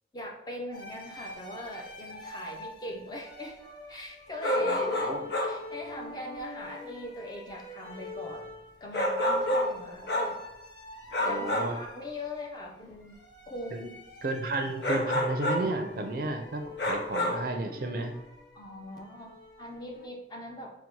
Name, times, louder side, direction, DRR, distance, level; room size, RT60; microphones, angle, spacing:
voice 1, 0.1-3.6 3.9-5.2 5.5-8.5 8.8-10.4 11.2-13.1 13.5-14.0 18.5-20.7, left 1 dB, 20° left, 0 dB, 0.5 m, -40 dB
sound 1, 0.7-20.1, left 3 dB, 90° left, 1.0 m, -46 dB
sound 2, 4.4-5.7 8.9-10.4 11.1-11.8 14.8-15.7 16.8-17.5, left 1 dB, 70° left, 0.7 m, -29 dB
voice 2, 4.6-5.3 11.2-11.8 13.7-13.8 14.2-18.1, right 2 dB, 50° right, 5 dB, 0.4 m, -32 dB
4.0 x 2.1 x 4.5 m, 0.83 s
head